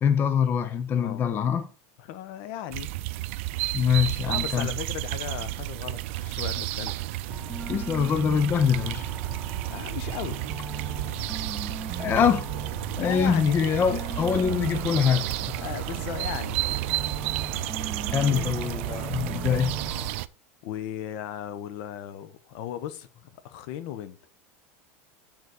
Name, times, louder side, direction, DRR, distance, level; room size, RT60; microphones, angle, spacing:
voice 1, 0.0-1.7 3.7-4.7 7.7-9.1 12.0-12.5 13.0-15.6 18.1-19.8, left 7 dB, 30° left, 0.7 m, -24 dB
voice 2, 0.9-1.2 2.0-2.9 4.3-7.1 9.7-10.4 13.0-14.1 15.6-16.6 18.3-18.7 20.6-24.2, left 11 dB, 65° left, 0.9 m, -36 dB
sound 1, 2.7-20.3, right 17 dB, 70° right, 0.4 m, -32 dB
sound 2, 7.3-20.1, equal, ahead, 0.9 m, -39 dB
6.8 x 4.1 x 6.4 m
supercardioid pair, 125°, 7 cm